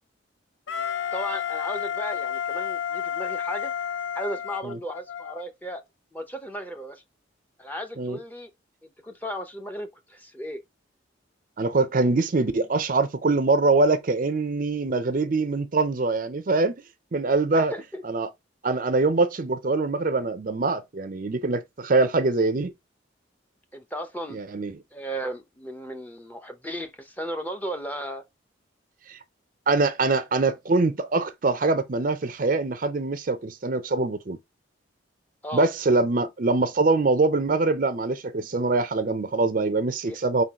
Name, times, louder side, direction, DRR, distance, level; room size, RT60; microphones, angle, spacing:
Wind instrument woodwind instrument, 0.7-5.4, left 9 dB, 75° left, 0.4 m, -31 dB
voice 1, 1.1-3.7 4.1-5.8 6.1-7.0 7.6-8.5 8.8-10.6 17.5-18.0 23.7-24.4 24.9-28.2 35.4-35.7 40.0-40.2, equal, 10° left, 0.6 m, -35 dB
voice 2, 11.6-16.7 17.1-17.7 18.0-18.3 18.6-22.7 24.3-24.8 29.1-29.2 29.7-34.4 35.5-40.4, right 3 dB, 45° right, 0.5 m, -23 dB
4.7 x 3.8 x 2.8 m
head